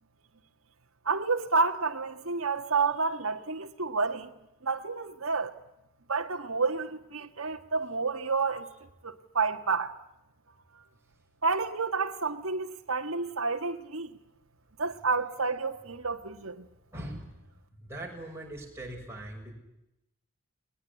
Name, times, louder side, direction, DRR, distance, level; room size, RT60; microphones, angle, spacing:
voice 1, 1.0-4.3 4.6-5.5 6.1-8.7 9.0-10.0 11.4-14.1 14.8-16.7, right 4 dB, 70° right, 1.6 m, -30 dB
voice 2, 16.9-17.4 17.7-19.5, right 1 dB, 10° right, 6.8 m, -41 dB
21.0 x 21.0 x 9.8 m
head